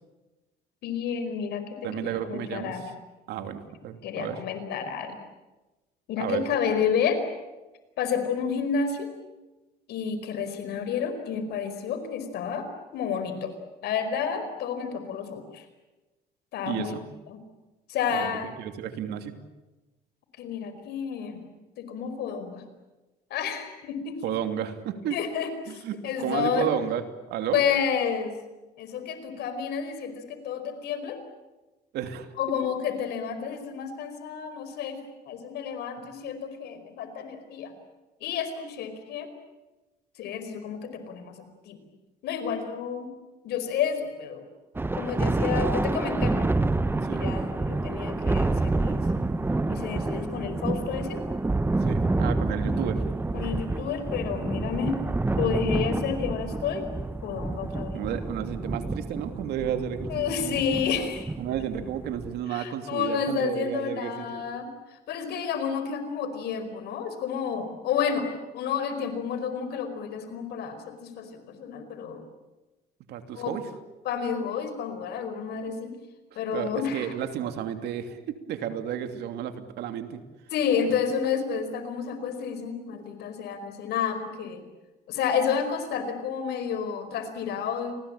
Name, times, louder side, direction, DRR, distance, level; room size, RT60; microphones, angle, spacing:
voice 1, 0.8-2.8 4.0-5.2 6.1-7.3 8.0-9.1 9.9-13.5 13.8-15.6 16.5-16.9 17.3-17.4 17.9-18.5 20.4-21.4 21.8-22.6 23.3-24.3 25.1-26.7 27.5-28.4 28.8-31.2 32.4-35.0 35.3-37.7 38.2-39.3 40.2-41.8 42.2-43.1 43.4-44.5 44.9-46.5 47.1-49.1 49.7-51.2 53.3-55.0 55.4-56.9 57.2-58.0 60.1-61.3 62.5-68.3 68.5-72.2 73.3-73.5 74.0-76.0 76.3-77.1 80.5-84.6 85.1-87.9, left 7 dB, 75° left, 9 dB, 4.9 m, -30 dB
voice 2, 1.8-2.9 3.3-4.4 6.2-6.4 16.7-17.0 18.1-18.3 18.6-19.3 24.2-25.2 25.7-27.0 27.3-27.6 31.9-32.3 36.0-36.1 47.0-47.3 51.8-53.0 57.9-60.7 61.4-64.4 73.1-73.7 76.3-80.2, right 10 dB, 80° right, 8 dB, 2.8 m, -32 dB
Thunder, 44.8-62.4, right 2 dB, 15° right, 1.1 m, -28 dB
28.5 x 20.5 x 8.8 m, 1.1 s
cardioid pair, 110°, 17 cm